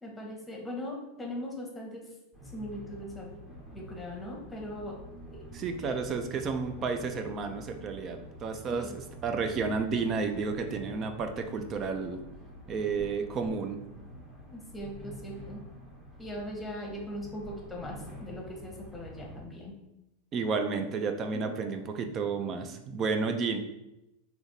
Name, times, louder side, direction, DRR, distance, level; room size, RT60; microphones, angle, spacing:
voice 1, 0.0-2.1 2.5-3.5 3.7-5.0 5.3-5.4 5.8-6.0 8.7-8.9 14.5-15.6 16.2-19.7 21.3-21.4, left 1 dB, 10° left, -1 dB, 1.0 m, -40 dB
sound 1, 2.3-19.4, equal, 15° right, 0.9 m, -47 dB
voice 2, 5.5-12.2 12.7-13.8 20.3-23.6, right 4 dB, 35° right, 6 dB, 0.4 m, -31 dB
3.4 x 2.8 x 2.7 m, 0.92 s
hypercardioid pair, 120°, 0 cm